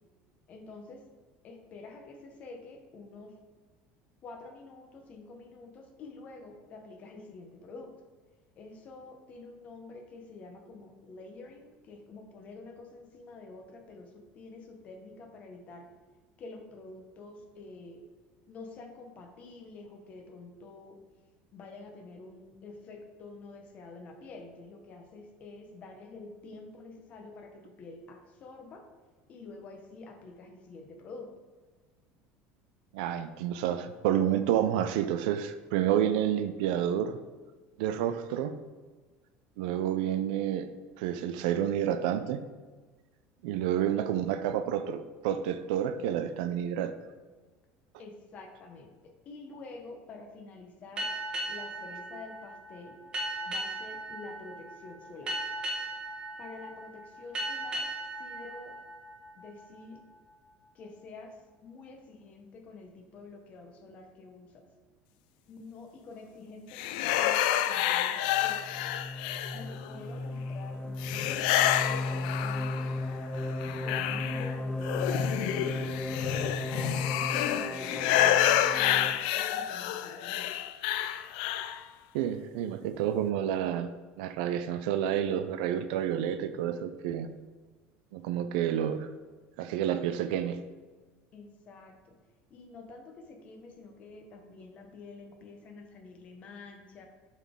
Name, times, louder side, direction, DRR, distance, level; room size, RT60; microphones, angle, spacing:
voice 1, 0.5-1.0 1.4-3.3 4.2-7.9 8.6-15.9 16.4-18.0 18.5-21.0 21.5-28.8 29.3-31.3 48.0-51.1 51.5-53.0 53.5-55.4 56.4-57.9 58.2-58.8 59.3-60.0 60.7-64.7 65.5-68.8 69.5-73.0 73.8-76.3 76.7-80.5 91.3-92.1 92.5-97.1, left 3 dB, 30° left, 4 dB, 0.9 m, -48 dB
voice 2, 32.9-37.2 37.8-38.6 39.6-40.7 41.0-42.4 43.4-47.0 82.1-87.4 88.1-89.1 89.6-90.6, right 10 dB, 80° right, 11 dB, 0.4 m, -29 dB
sound 1, 51.0-60.1, right 1 dB, 20° right, 1.1 m, -38 dB
sound 2, 66.7-69.9 71.0-73.0 73.4-81.8, left 12 dB, 85° left, 0.3 m, -29 dB
sound 3, 68.3-79.1, left 2 dB, 10° left, 0.4 m, -35 dB
7.1 x 4.0 x 3.6 m, 1.3 s
cardioid pair, 170°, 5 cm